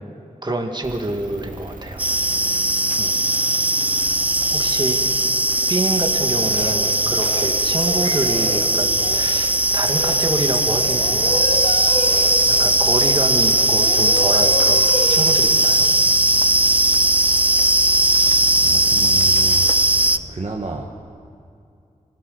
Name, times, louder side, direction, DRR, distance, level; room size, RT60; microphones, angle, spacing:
voice 1, 0.4-2.0 2.4-2.6 2.9-3.2 4.5-5.2 5.7-11.7 12.5-15.9, right 2 dB, 30° right, 3 dB, 2.1 m, -27 dB
sound 1, 0.8-20.2, right 2 dB, 70° right, 2.4 m, -38 dB
sound 2, 2.0-20.2, right 1 dB, 10° right, 0.5 m, -18 dB
sound 3, 6.4-6.9 7.2-7.4 7.8-8.6 8.9-9.2 9.6-12.6 12.9-13.1 13.4-15.3, left 2 dB, 50° left, 3.2 m, -29 dB
voice 2, 18.6-19.6 20.3-20.9, right 3 dB, 50° right, 0 dB, 1.4 m, -30 dB
24.0 x 16.0 x 6.8 m, 2.5 s
wide cardioid pair, 90°, 14 cm